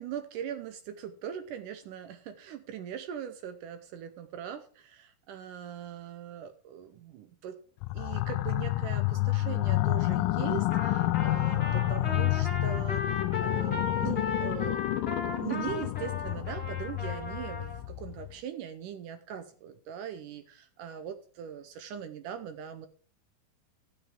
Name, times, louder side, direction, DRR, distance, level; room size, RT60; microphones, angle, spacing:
voice 1, 0.0-7.6 7.9-22.9, right 9 dB, 75° right, 9 dB, 2.1 m, -40 dB
sound 1, 7.8-18.3, left 18 dB, 80° left, 2.2 m, -29 dB
Trumpet, 10.7-17.8, left 4 dB, 20° left, 2.1 m, -36 dB
12.5 x 8.9 x 3.6 m, 0.41 s
omnidirectional pair, 4.2 m